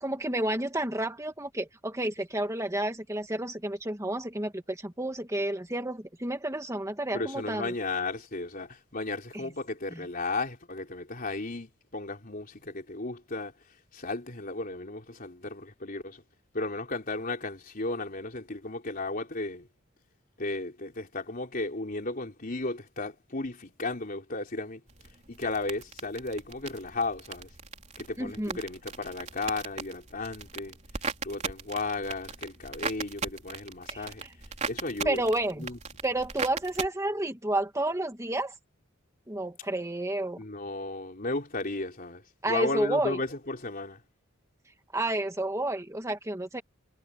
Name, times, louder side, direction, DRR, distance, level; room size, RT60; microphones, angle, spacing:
voice 1, 0.0-7.7 28.2-28.6 33.9-34.1 35.1-35.7 36.0-38.5 39.3-40.4 42.4-43.2 44.9-46.6, right 1 dB, 15° right, 2.0 m, -30 dB
voice 2, 7.1-13.5 13.9-16.2 16.5-19.7 20.4-24.8 25.3-27.5 28.0-30.8 31.2-34.2 34.6-35.3 35.6-35.8 40.4-44.0, left 2 dB, 45° left, 3.9 m, -34 dB
sound 1, 24.9-36.9, right 5 dB, 35° right, 3.6 m, -39 dB
head